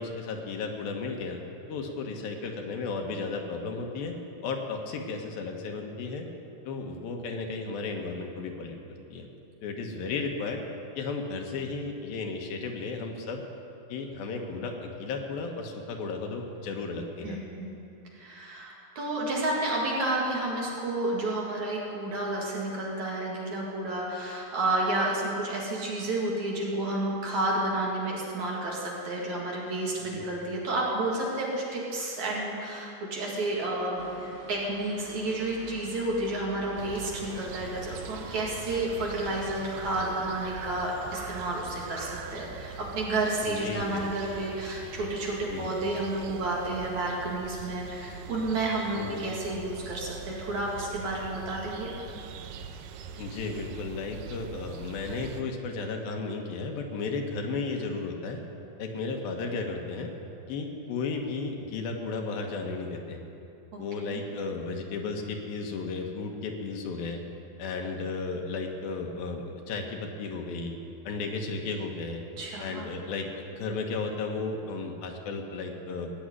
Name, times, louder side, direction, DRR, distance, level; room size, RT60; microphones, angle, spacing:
voice 1, 0.0-1.4 1.7-4.2 4.4-6.3 6.7-8.8 9.1-9.3 9.6-10.6 11.0-13.4 13.9-17.4 30.1-30.2 43.4-44.1 45.5-45.7 48.9-49.2 53.2-58.4 58.8-60.1 60.5-63.2 63.8-67.2 67.6-70.8 71.1-72.2 72.6-76.1, left 4 dB, 75° left, 2 dB, 2.9 m, -34 dB
voice 2, 17.2-17.8 18.1-51.9 63.7-64.2 72.4-72.9, right 2 dB, 55° right, -3 dB, 3.1 m, -31 dB
sound 1, 34.0-40.0, right 2 dB, 20° right, 1.6 m, -47 dB
sound 2, 36.8-55.4, right 6 dB, 80° right, 2.2 m, -43 dB
17.5 x 6.2 x 9.5 m, 2.7 s
omnidirectional pair, 4.3 m